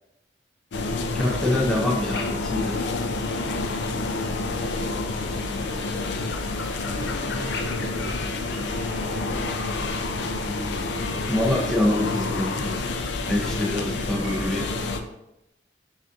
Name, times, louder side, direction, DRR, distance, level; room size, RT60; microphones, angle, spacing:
sound 1, 0.7-15.0, left 3 dB, 85° left, 0.4 m, -28 dB
voice 1, 1.1-2.9 11.3-12.9 13.3-14.7, left 1 dB, 5° left, -3 dB, 0.5 m, -25 dB
sound 2, 3.5-14.8, right 2 dB, 60° right, 0.6 m, -47 dB
voice 2, 4.1-5.5 6.9-10.2, left 1 dB, 70° left, -1 dB, 1.0 m, -41 dB
5.8 x 2.5 x 2.6 m, 0.87 s
head